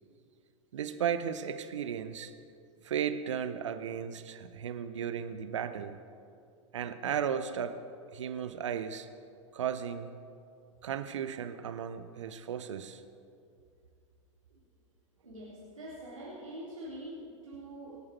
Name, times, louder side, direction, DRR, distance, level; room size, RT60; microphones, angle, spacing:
voice 1, 0.7-2.3 2.8-6.0 6.7-7.7 8.1-9.1 9.5-10.1 10.8-13.0, right 8 dB, 65° right, 10 dB, 0.9 m, -35 dB
voice 2, 15.2-18.0, right 1 dB, 80° right, -8 dB, 3.4 m, -44 dB
25.5 x 8.6 x 4.6 m, 2.5 s
figure-of-eight pair, 90°, 17 cm